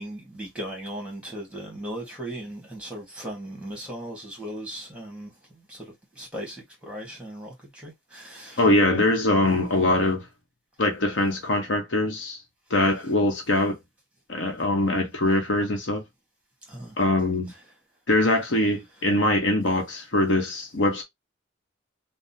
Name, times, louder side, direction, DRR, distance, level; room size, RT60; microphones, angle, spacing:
voice 1, 0.0-8.6 16.7-17.1, right 1 dB, 5° right, 1.3 m, -38 dB
voice 2, 8.6-10.2 10.8-12.4 12.7-13.8 14.3-16.0 17.0-17.5 18.1-21.0, left 1 dB, 65° left, 0.9 m, -22 dB
3.5 x 2.1 x 2.7 m
head